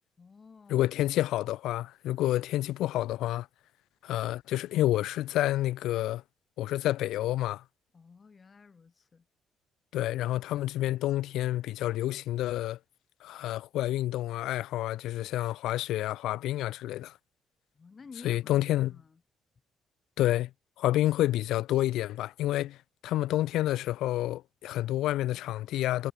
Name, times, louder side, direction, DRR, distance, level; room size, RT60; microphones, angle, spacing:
voice 1, 0.2-0.9 7.9-9.3 17.7-19.2, left 5 dB, 35° left, 1.9 m, -52 dB
voice 2, 0.7-3.5 4.0-6.2 6.6-7.6 9.9-12.8 13.2-17.1 18.2-18.9 20.2-20.5 20.8-22.8 23.0-26.1, left 14 dB, 85° left, 0.3 m, -29 dB
cardioid pair, 90°, 0 cm